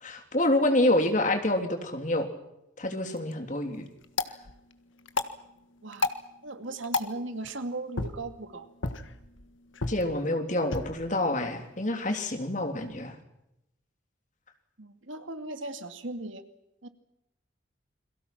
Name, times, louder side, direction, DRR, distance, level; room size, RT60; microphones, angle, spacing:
voice 1, 0.0-2.3 2.8-3.9 9.9-13.1, left 1 dB, 40° left, 5 dB, 3.3 m, -27 dB
sound 1, 3.0-13.1, left 3 dB, 75° left, 1.7 m, -37 dB
voice 2, 6.4-8.7 14.8-16.4 16.8-16.9, right 2 dB, 75° right, 8 dB, 2.4 m, -37 dB
29.5 x 22.5 x 6.0 m, 0.86 s
head